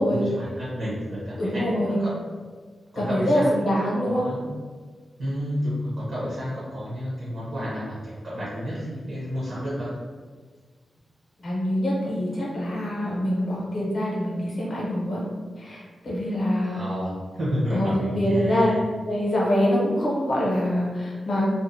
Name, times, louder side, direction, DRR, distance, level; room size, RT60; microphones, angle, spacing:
voice 1, 0.0-2.1 2.9-3.5 3.8-4.5 5.2-10.0 16.6-18.8, equal, 60° right, -9 dB, 0.7 m, -30 dB
voice 2, 1.4-2.0 3.0-4.2 11.4-15.2 15.6-16.8 17.7-18.7 19.1-21.5, equal, 50° left, -5 dB, 0.7 m, -24 dB
2.6 x 2.0 x 2.5 m, 1.5 s
wide cardioid pair, 180°, 0 cm